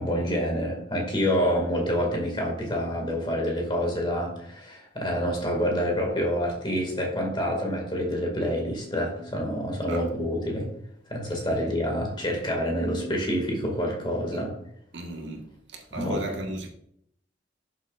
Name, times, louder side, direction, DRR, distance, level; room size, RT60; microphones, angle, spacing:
voice 1, 0.0-10.7 11.1-14.5 15.9-16.2, equal, 25° left, 2.1 m, -27 dB
voice 2, 14.9-15.4 15.7-16.7, right 1 dB, 65° right, 1.6 m, -34 dB
11.5 x 7.2 x 2.5 m
head